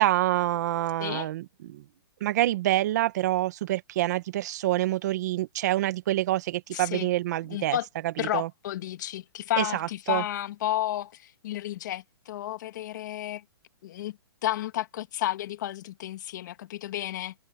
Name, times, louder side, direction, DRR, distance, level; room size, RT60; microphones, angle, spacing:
voice 1, 0.0-1.8 2.2-7.8 8.0-8.5 9.6-10.2, right 15 dB, 40° right, 1.5 m, -27 dB
voice 2, 6.7-7.1 7.5-7.9 8.2-13.4 13.8-17.3, left 13 dB, 45° left, 1.7 m, -32 dB
open air
hypercardioid pair, 165°, 13 cm